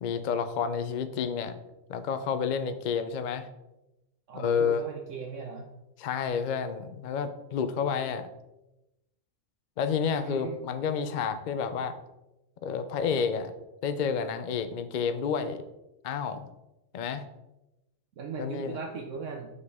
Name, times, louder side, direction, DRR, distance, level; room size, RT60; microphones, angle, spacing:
voice 1, 0.0-1.6 1.9-3.5 4.3-4.9 6.0-8.3 9.8-11.9 12.6-13.5 13.8-15.6 16.0-16.5 16.9-17.2 18.4-18.8, left 6 dB, 65° left, 10 dB, 0.4 m, -30 dB
voice 2, 4.3-5.6 10.2-10.6 18.2-19.5, right 5 dB, 70° right, 2 dB, 1.1 m, -38 dB
6.6 x 5.0 x 3.6 m, 0.94 s
omnidirectional pair, 1.4 m